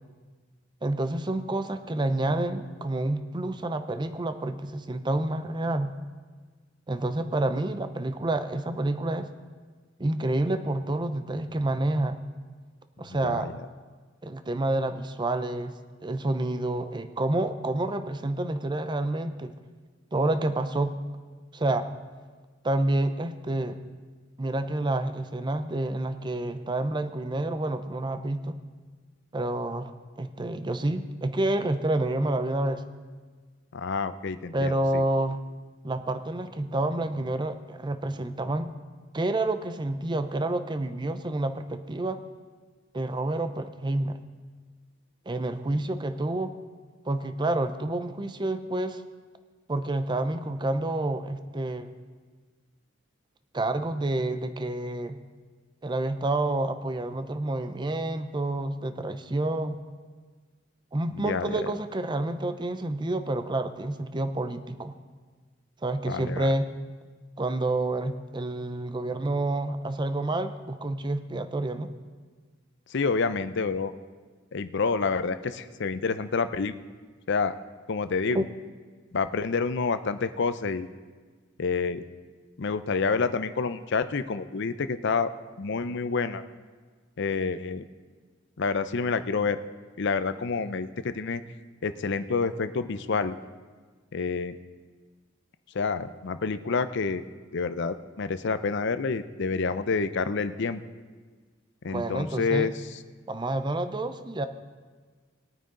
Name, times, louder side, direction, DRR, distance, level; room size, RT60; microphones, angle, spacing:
voice 1, 0.8-5.9 6.9-9.3 10.0-12.2 13.0-13.5 14.2-15.7 16.0-19.5 20.1-20.9 21.5-21.9 22.6-23.8 24.4-28.6 29.3-29.9 30.2-32.8 34.5-35.4 35.8-38.7 39.1-42.2 42.9-44.2 45.3-46.5 47.0-49.0 49.7-51.9 53.5-55.2 55.8-59.8 60.9-64.9 65.8-66.7 67.4-71.9 78.3-78.4 101.9-102.7 103.3-104.5, right 2 dB, 25° right, 10 dB, 0.6 m, -28 dB
voice 2, 33.7-35.0 61.2-61.6 66.0-66.5 72.9-73.9 74.5-76.7 77.3-77.5 77.9-78.4 79.1-80.9 81.6-82.0 82.6-85.3 85.6-86.4 87.2-87.8 88.6-89.6 90.0-91.4 91.8-93.4 94.1-94.6 95.7-97.2 97.5-100.8 101.8-102.7, left 4 dB, 60° left, 12 dB, 0.6 m, -28 dB
20.5 x 9.3 x 3.8 m, 1.5 s
head